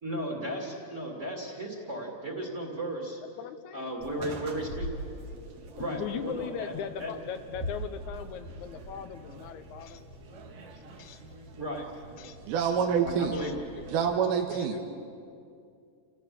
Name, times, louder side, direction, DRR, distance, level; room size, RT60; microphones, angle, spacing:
voice 1, 0.0-3.2 3.7-4.9 5.7-6.7 7.0-7.1 11.6-12.1 13.0-13.6 14.8-14.9, right 1 dB, 25° right, 0 dB, 2.4 m, -35 dB
voice 2, 3.4-3.9 4.2-4.4 5.9-10.0 11.0-11.2 12.2-12.4 13.3-13.5 14.5-14.8, left 8 dB, 75° left, 10 dB, 2.1 m, -39 dB
sound 1, 4.0-14.2, right 1 dB, 60° right, 2.5 m, -43 dB
voice 3, 12.5-13.3 13.9-14.9, right 7 dB, 80° right, 3 dB, 2.6 m, -26 dB
29.5 x 15.5 x 6.8 m, 2.5 s
omnidirectional pair, 3.7 m